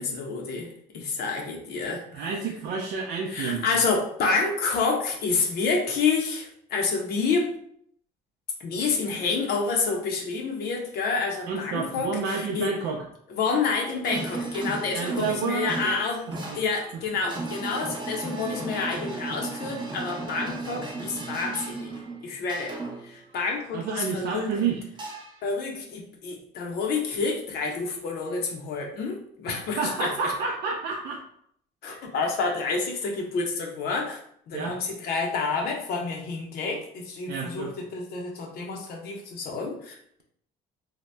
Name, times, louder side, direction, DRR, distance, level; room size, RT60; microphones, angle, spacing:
voice 1, 0.0-2.2 3.3-7.5 8.6-12.7 13.3-21.9 22.2-22.7 23.0-24.5 25.4-30.3 31.8-34.2 34.5-40.2, left 4 dB, 70° left, 0 dB, 0.7 m, -29 dB
voice 2, 2.1-3.7 11.5-13.0 14.9-16.0 16.5-16.6 23.7-24.8 29.5-31.2 34.5-34.8 37.3-37.7, right 5 dB, 80° right, -1 dB, 0.4 m, -30 dB
sound 1, 13.8-23.2 25.0-25.5, right 3 dB, 25° right, 0.7 m, -35 dB
2.8 x 2.1 x 3.2 m, 0.67 s
cardioid pair, 110°, 17 cm